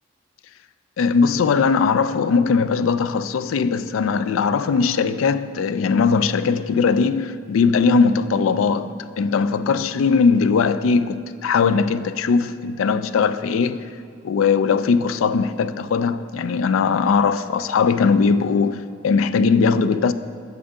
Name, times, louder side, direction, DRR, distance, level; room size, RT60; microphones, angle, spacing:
voice 1, 1.0-13.9 14.2-20.1, left 5 dB, 85° left, 0.3 m, -19 dB
8.7 x 5.9 x 5.3 m
head